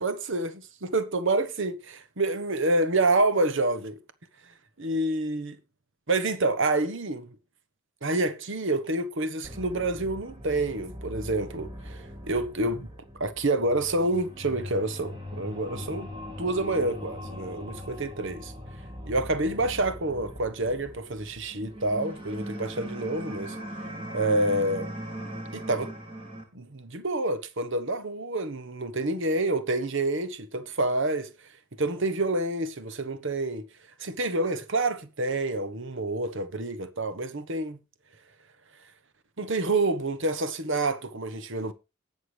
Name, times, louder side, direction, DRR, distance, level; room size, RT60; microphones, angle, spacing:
voice 1, 0.0-0.5 0.8-4.0 4.8-5.6 6.1-7.3 8.0-12.9 13.2-16.1 16.4-18.5 19.1-23.6 24.1-24.9 25.5-25.9 26.5-31.3 31.8-33.6 34.0-37.8 39.4-41.7, right 2 dB, 55° right, 1.1 m, -28 dB
sound 1, 9.4-26.4, equal, 25° right, 2.7 m, -40 dB
19.5 x 6.6 x 3.3 m
head